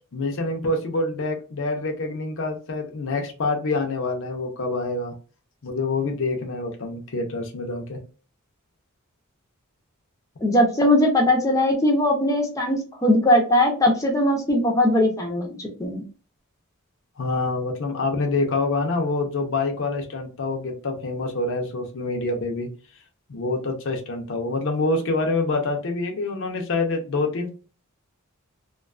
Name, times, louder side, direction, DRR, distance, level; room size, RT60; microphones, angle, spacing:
voice 1, 0.1-5.1 5.6-8.0 17.2-22.7 23.3-27.5, left 3 dB, 60° left, 3 dB, 0.6 m, -26 dB
voice 2, 10.4-16.0, left 1 dB, 15° left, 0 dB, 0.5 m, -20 dB
2.5 x 2.3 x 2.3 m, 0.35 s
head